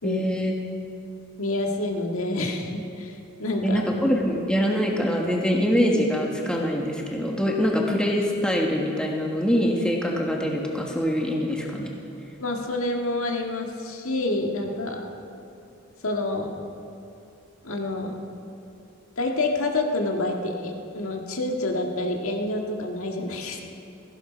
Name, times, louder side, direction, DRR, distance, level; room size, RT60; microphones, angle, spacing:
voice 1, 0.0-0.5 3.6-11.9, equal, 5° left, -1 dB, 1.5 m, -24 dB
voice 2, 1.4-3.8 12.4-15.1 16.0-16.6 17.6-18.2 19.2-23.6, left 2 dB, 80° left, 2 dB, 1.8 m, -28 dB
17.0 x 15.5 x 5.2 m, 2.6 s
head